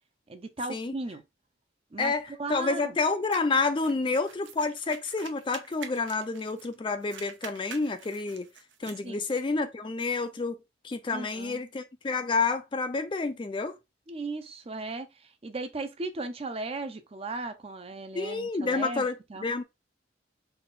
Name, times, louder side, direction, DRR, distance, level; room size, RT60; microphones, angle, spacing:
voice 1, 0.3-1.2 1.9-2.1 2.4-3.0 9.0-9.2 11.1-11.6 14.1-19.4, right 2 dB, 30° right, 0.5 m, -36 dB
voice 2, 2.0-8.5 8.8-10.6 10.8-13.7 18.1-19.1 19.4-19.6, left 3 dB, 25° left, 0.3 m, -29 dB
sound 1, 3.3-6.7 7.0-9.0, right 7 dB, 75° right, 0.7 m, -46 dB
4.1 x 2.4 x 3.6 m
head